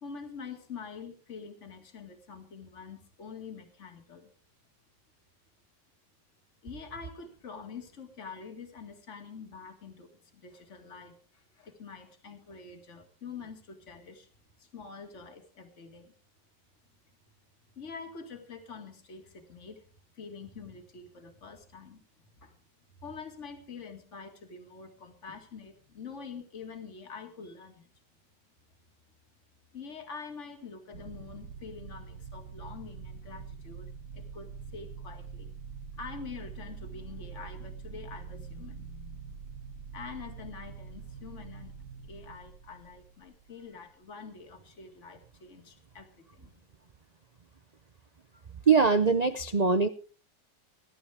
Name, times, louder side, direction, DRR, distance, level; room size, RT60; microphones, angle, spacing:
voice 1, 0.0-4.3 6.6-14.3 14.6-16.1 17.8-19.8 20.1-22.0 22.4-22.6 23.0-28.0 29.7-35.5 35.9-39.5 39.9-41.7 42.1-46.5, left 5 dB, 40° left, 5 dB, 2.3 m, -46 dB
sound 1, 30.9-43.9, right 5 dB, 70° right, 1.8 m, -45 dB
voice 2, 48.7-49.9, right 5 dB, 90° right, 10 dB, 0.3 m, -22 dB
21.5 x 11.5 x 3.5 m, 0.39 s
omnidirectional pair, 1.9 m